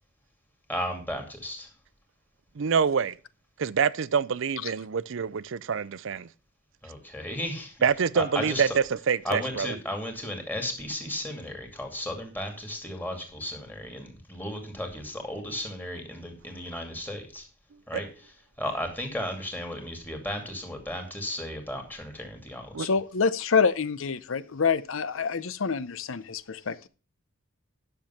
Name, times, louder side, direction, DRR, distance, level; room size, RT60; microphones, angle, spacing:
voice 1, 0.7-1.7 6.8-7.8 8.1-8.8 9.2-17.5 17.9-18.3 18.6-22.9, left 1 dB, 10° left, 2.4 m, -34 dB
voice 2, 2.6-3.2 3.6-6.3 7.8-9.7 22.7-22.9, right 6 dB, 60° right, 0.5 m, -26 dB
voice 3, 22.8-26.9, left 5 dB, 65° left, 0.6 m, -26 dB
10.5 x 6.7 x 5.7 m
head